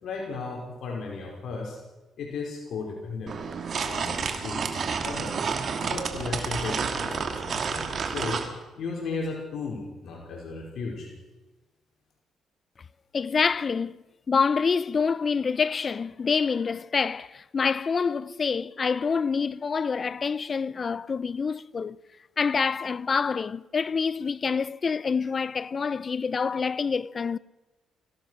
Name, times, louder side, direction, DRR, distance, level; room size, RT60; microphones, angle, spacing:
voice 1, 0.0-1.8 2.2-3.3 3.7-5.4 5.8-8.4 8.8-11.1, left 4 dB, 65° left, 5.1 m, -35 dB
sound 1, 3.3-8.5, right 5 dB, 50° right, 2.9 m, -30 dB
voice 2, 13.1-14.0 14.3-22.0 22.4-27.4, left 5 dB, 40° left, 0.6 m, -26 dB
24.0 x 17.0 x 6.5 m
cardioid pair, 90°, 0 cm